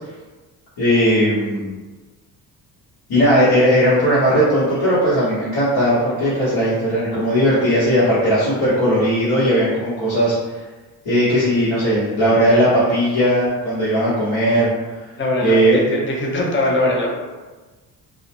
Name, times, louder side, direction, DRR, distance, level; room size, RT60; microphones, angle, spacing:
voice 1, 0.8-1.7 3.1-10.3 11.0-14.7 15.4-15.8, equal, 65° left, -12 dB, 1.2 m, -17 dB
voice 2, 15.2-17.1, left 1 dB, 30° left, -2 dB, 0.7 m, -21 dB
2.4 x 2.1 x 2.9 m, 1.3 s
supercardioid pair, 70°, 43 cm